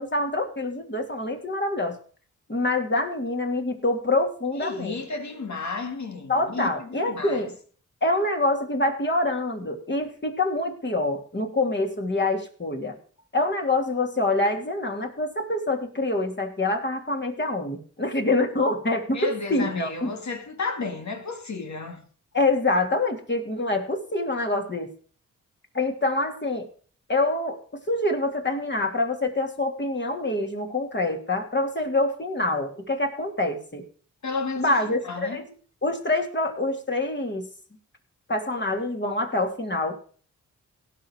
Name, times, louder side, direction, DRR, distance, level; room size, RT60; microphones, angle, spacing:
voice 1, 0.0-2.0 2.5-5.0 6.3-7.5 8.0-12.9 13.3-20.1 22.3-24.9 25.7-26.7 27.1-27.6 27.9-33.8 34.6-35.4 35.8-37.5 38.3-39.9, left 2 dB, 35° left, 3.1 m, -26 dB
voice 2, 4.6-7.5 19.1-22.0 34.2-35.4, left 4 dB, 60° left, 2.2 m, -32 dB
17.5 x 5.9 x 4.8 m
cardioid pair, 55°, 32 cm